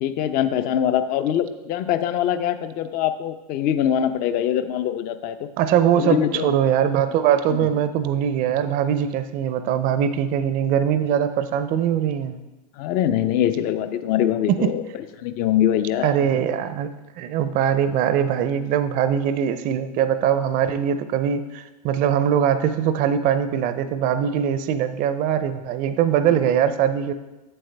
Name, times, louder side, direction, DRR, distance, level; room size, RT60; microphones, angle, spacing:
voice 1, 0.0-5.5 6.0-6.5 7.5-7.7 12.8-14.8 15.2-16.2, left 10 dB, 45° left, 10 dB, 0.6 m, -23 dB
voice 2, 5.6-12.4 14.5-14.8 16.0-16.9 17.2-27.1, right 9 dB, 45° right, 11 dB, 0.5 m, -21 dB
7.9 x 7.7 x 3.4 m, 1.1 s
hypercardioid pair, 100°, 20 cm